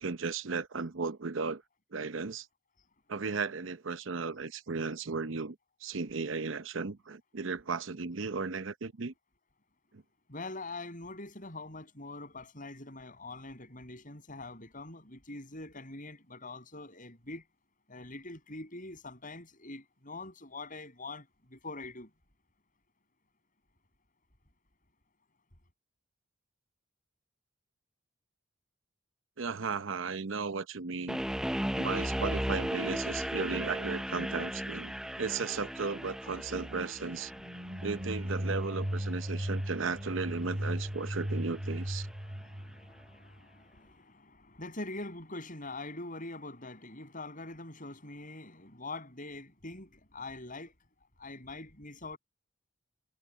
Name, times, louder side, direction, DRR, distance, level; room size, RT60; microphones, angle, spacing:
voice 1, 0.0-1.6 1.9-2.5 3.1-5.6 5.8-9.1 9.9-10.0 29.4-31.2 31.8-34.9 35.2-37.3 37.8-42.1, right 4 dB, 65° right, 0.8 m, -35 dB
voice 2, 10.3-17.4 17.9-22.1 37.4-37.9 39.3-39.4 42.2-50.7 51.2-52.2, left 2 dB, 40° left, 7.4 m, -44 dB
sound 1, 31.1-42.1, equal, 5° right, 0.5 m, -37 dB
sound 2, 37.3-43.4, equal, 30° right, 2.4 m, -36 dB
head